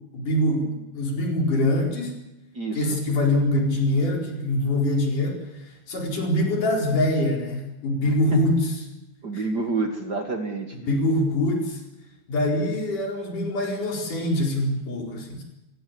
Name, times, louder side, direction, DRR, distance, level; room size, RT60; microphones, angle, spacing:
voice 1, 0.1-2.1 2.7-5.4 5.9-8.7 9.3-9.5 10.7-11.8 12.3-15.4, left 1 dB, 85° left, 0 dB, 6.1 m, -24 dB
voice 2, 2.5-3.0 8.3-8.4 9.2-10.8, right 3 dB, 40° right, 5 dB, 1.8 m, -28 dB
28.5 x 16.0 x 8.6 m, 0.97 s
omnidirectional pair, 3.6 m